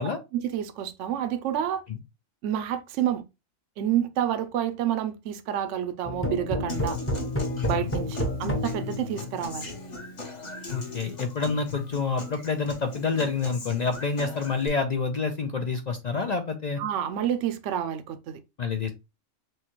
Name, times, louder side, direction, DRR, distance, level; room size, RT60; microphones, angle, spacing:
voice 1, 0.3-1.8 2.4-3.2 3.8-7.0 7.6-9.7 16.8-18.4, right 10 dB, 75° right, 0.9 m, -29 dB
sound 1, 6.0-9.8, left 1 dB, 15° left, 0.5 m, -30 dB
Human voice / Acoustic guitar, 6.7-14.7, left 4 dB, 35° left, 1.1 m, -38 dB
voice 2, 10.7-16.8 18.6-18.9, left 4 dB, 60° left, 0.4 m, -28 dB
6.2 x 2.2 x 3.0 m
omnidirectional pair, 1.3 m